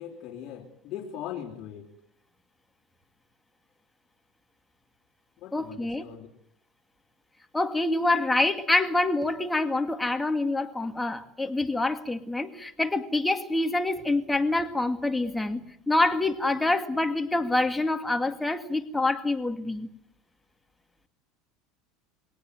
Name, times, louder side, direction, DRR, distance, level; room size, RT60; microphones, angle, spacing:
voice 1, 0.0-1.9 5.4-6.3, left 10 dB, 50° left, -3 dB, 3.5 m, -40 dB
voice 2, 5.5-6.0 7.5-15.6 15.9-19.9, left 2 dB, 10° left, 7 dB, 2.2 m, -26 dB
23.0 x 18.0 x 9.4 m, 0.76 s
supercardioid pair, 110°, 0 cm